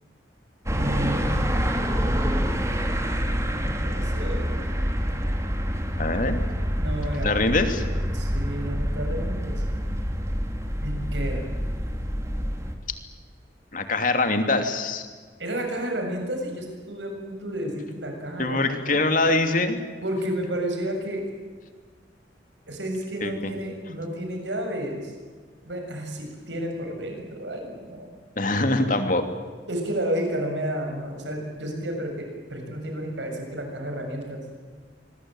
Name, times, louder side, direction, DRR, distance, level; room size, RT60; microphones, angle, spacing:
sound 1, 0.7-12.7, equal, 15° right, 2.8 m, -27 dB
voice 1, 0.7-1.3 3.6-4.6 6.7-7.3 8.1-9.6 10.8-11.5 15.4-19.0 20.0-21.2 22.7-25.1 25.7-28.1 29.7-34.4, right 1 dB, 85° right, 3 dB, 7.2 m, -31 dB
voice 2, 6.0-6.4 7.2-7.8 13.7-15.1 18.4-19.8 23.2-23.5 28.4-29.2, left 2 dB, 50° left, 7 dB, 2.9 m, -23 dB
25.5 x 22.0 x 9.1 m, 1.5 s
head